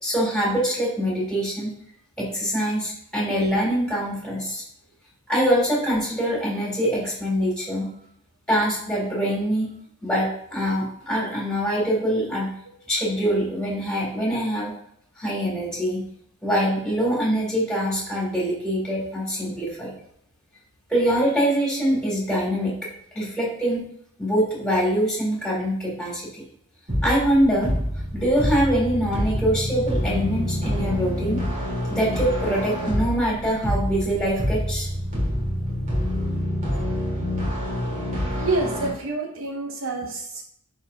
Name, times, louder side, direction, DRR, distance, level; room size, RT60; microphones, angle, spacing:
voice 1, 0.0-1.7 2.2-4.6 5.3-7.9 8.5-9.7 10.0-12.5 12.9-14.8 15.2-16.0 16.4-20.0 20.9-22.7 23.1-23.8 24.2-26.4 27.0-27.7 28.1-31.4 31.9-34.9, equal, 5° left, -4 dB, 3.2 m, -24 dB
sound 1, 26.9-38.9, equal, 35° right, 2.8 m, -27 dB
voice 2, 38.3-40.4, right 3 dB, 65° right, 2 dB, 1.0 m, -27 dB
10.0 x 4.6 x 3.0 m, 0.69 s
head